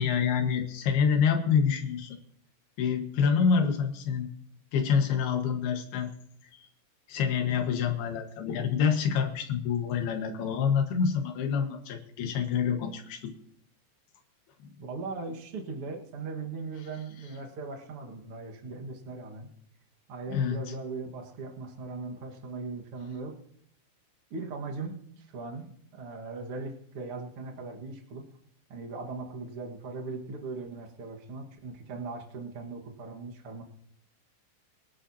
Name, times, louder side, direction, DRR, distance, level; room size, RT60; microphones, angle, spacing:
voice 1, 0.0-2.2 2.8-4.3 4.7-6.1 7.1-13.3 20.3-20.6, left 6 dB, 65° left, 4 dB, 3.1 m, -27 dB
voice 2, 14.8-19.5 20.1-23.4 24.3-28.3 28.7-33.6, right 3 dB, 75° right, 0 dB, 1.2 m, -39 dB
24.5 x 11.0 x 2.8 m, 0.68 s
omnidirectional pair, 5.3 m